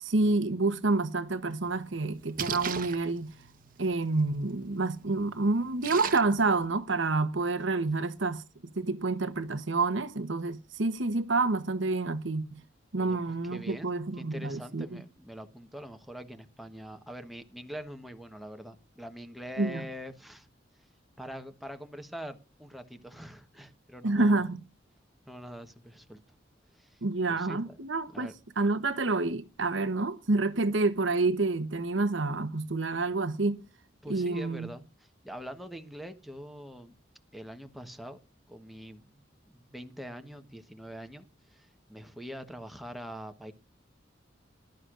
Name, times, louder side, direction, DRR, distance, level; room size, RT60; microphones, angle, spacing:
voice 1, 0.0-3.3 3.8-8.4 8.8-12.5 12.9-14.9 19.6-19.8 24.0-24.6 27.0-28.3 28.6-33.6 34.1-34.7, right 3 dB, 90° right, 1.1 m, -28 dB
Splash splatter, 1.6-6.7, right 6 dB, 50° right, 1.1 m, -41 dB
voice 2, 13.0-20.5 21.2-24.5 25.2-26.2 26.7-27.0 27.3-28.3 34.0-36.9 37.3-38.2 38.5-39.1 39.5-43.5, equal, ahead, 1.2 m, -44 dB
19.0 x 12.0 x 2.5 m
head